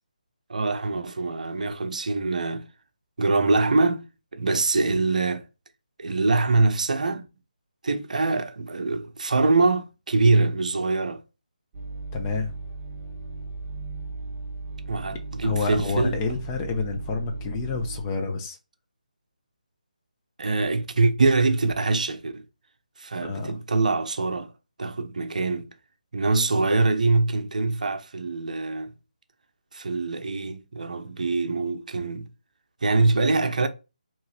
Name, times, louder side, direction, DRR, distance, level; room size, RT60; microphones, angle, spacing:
voice 1, 0.5-2.7 3.2-4.1 4.3-5.5 6.0-7.3 7.8-11.2 14.9-16.2 20.4-22.4 23.0-24.5 24.8-25.7 26.1-28.9 29.7-32.3 32.8-33.7, right 3 dB, 65° right, 0.7 m, -24 dB
sound 1, 11.7-18.0, right 3 dB, 20° right, 1.0 m, -36 dB
voice 2, 12.1-12.5 15.4-18.6 23.2-23.5, left 4 dB, 20° left, 0.7 m, -29 dB
4.6 x 3.0 x 3.3 m
figure-of-eight pair, 155°, 4 cm